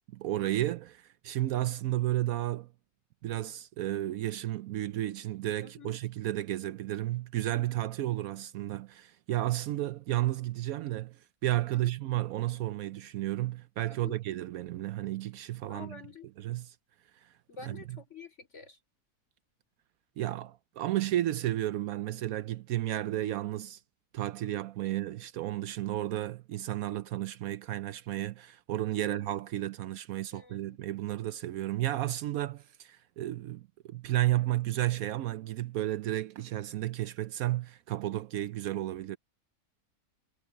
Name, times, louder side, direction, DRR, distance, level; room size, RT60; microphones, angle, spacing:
voice 1, 0.2-2.7 3.2-16.0 16.4-16.7 17.2-17.3 17.6-18.0 20.2-23.8 24.1-39.2, right 14 dB, 75° right, 1.0 m, -32 dB
voice 2, 5.6-5.9 11.7-11.9 13.9-14.2 15.7-16.3 17.5-18.8 24.8-25.0 29.0-29.3 30.3-30.8, left 6 dB, 50° left, 4.5 m, -48 dB
omnidirectional pair, 1.6 m